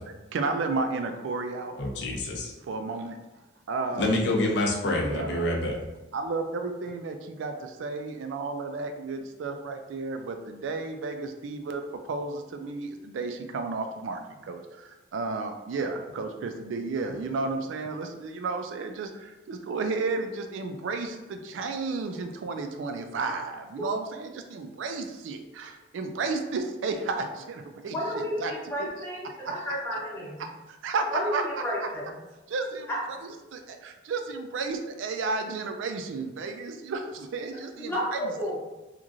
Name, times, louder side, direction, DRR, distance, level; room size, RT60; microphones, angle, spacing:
voice 1, 0.3-1.7 2.7-3.2 3.7-4.1 5.0-5.8 6.1-28.5 28.8-29.5 30.4-31.9 32.5-38.3, right 3 dB, 85° right, 5 dB, 0.3 m, -33 dB
voice 2, 1.8-2.5 3.9-5.8, left 1 dB, 60° left, 0 dB, 0.5 m, -27 dB
voice 3, 27.8-30.4 31.1-32.1 32.9-33.0 37.8-38.6, equal, 10° left, -7 dB, 0.7 m, -32 dB
3.0 x 2.4 x 2.5 m, 1.1 s
head